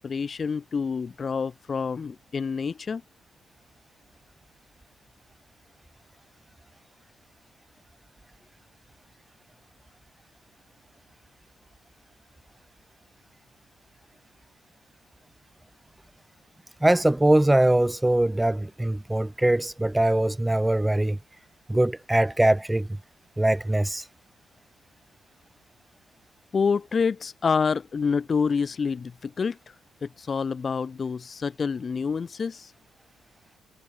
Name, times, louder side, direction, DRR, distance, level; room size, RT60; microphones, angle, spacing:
voice 1, 0.0-3.0 26.5-29.6 30.0-32.7, left 5 dB, 40° left, 4.4 m, -27 dB
voice 2, 16.8-21.2 21.7-22.9 23.4-24.0, right 1 dB, 10° right, 7.5 m, -22 dB
cardioid pair, 90°, 0 cm